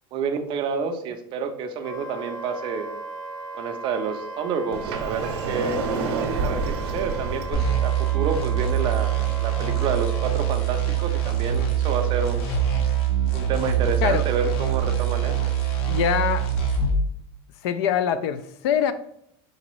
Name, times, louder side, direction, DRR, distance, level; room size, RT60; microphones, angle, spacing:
voice 1, 0.1-2.9 3.5-5.8 6.4-12.5 13.3-15.4, right 5 dB, 40° right, 0.4 m, -29 dB
Wind instrument woodwind instrument, 1.8-10.3, right 2 dB, 25° left, 0.6 m, -37 dB
Sliding door, 4.7-7.7, right 4 dB, 90° right, 0.5 m, -28 dB
sound 1, 7.5-17.0, right 9 dB, 70° left, 0.8 m, -24 dB
voice 2, 15.9-16.5 17.6-18.9, left 9 dB, 90° left, 0.4 m, -23 dB
3.9 x 2.6 x 3.0 m
cardioid pair, 155°, 13 cm